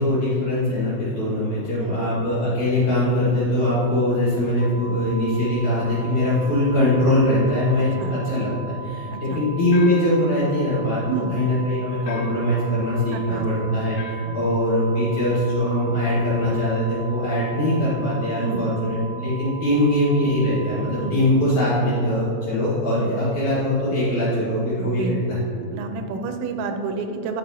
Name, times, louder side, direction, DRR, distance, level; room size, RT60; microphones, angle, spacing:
voice 1, 0.0-11.0 11.3-25.4, left 1 dB, 55° left, -10 dB, 2.2 m, -22 dB
sound 1, 4.6-21.1, right 4 dB, 55° right, 1.4 m, -39 dB
voice 2, 9.1-9.4 11.1-11.3 13.1-13.5 14.2-14.4 18.4-18.7 21.0-21.2 22.9-23.1 24.8-25.2 25.5-27.4, right 5 dB, 85° right, 6 dB, 2.8 m, -30 dB
sound 2, 9.7-10.3 12.0-12.5 14.0-14.4, left 7 dB, 80° left, 3.0 m, -39 dB
11.0 x 5.5 x 2.7 m, 2.6 s
omnidirectional pair, 5.2 m